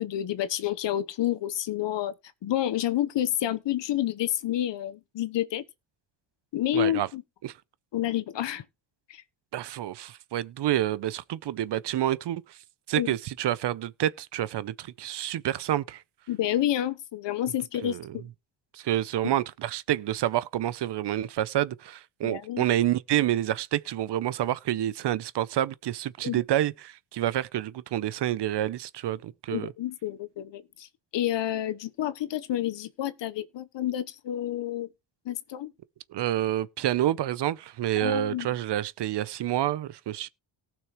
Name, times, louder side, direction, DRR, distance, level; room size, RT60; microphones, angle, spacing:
voice 1, 0.0-2.1 2.4-5.6 6.5-7.2 7.9-8.6 9.1-9.2 13.0-13.1 16.3-18.3 22.2-22.6 26.2-26.4 29.5-30.9 31.1-34.9 35.2-35.7 38.0-38.5, left 12 dB, 65° left, 1.0 m, -29 dB
voice 2, 6.7-7.1 7.4-7.5 9.5-12.6 12.9-16.0 17.8-18.2 18.7-29.7 36.1-40.3, right 12 dB, 60° right, 0.7 m, -28 dB
18.5 x 6.2 x 3.1 m
cardioid pair, 115°, 47 cm